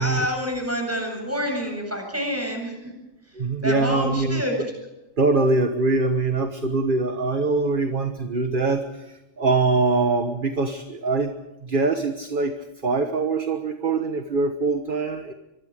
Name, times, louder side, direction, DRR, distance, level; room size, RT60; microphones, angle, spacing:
voice 1, 0.0-2.9 3.3-3.4 3.6-4.5, equal, 10° right, 2 dB, 8.0 m, -27 dB
voice 2, 3.3-4.4 5.2-11.4 11.6-15.3, right 3 dB, 40° right, 6 dB, 1.5 m, -23 dB
25.5 x 24.0 x 5.1 m, 0.98 s
omnidirectional pair, 1.4 m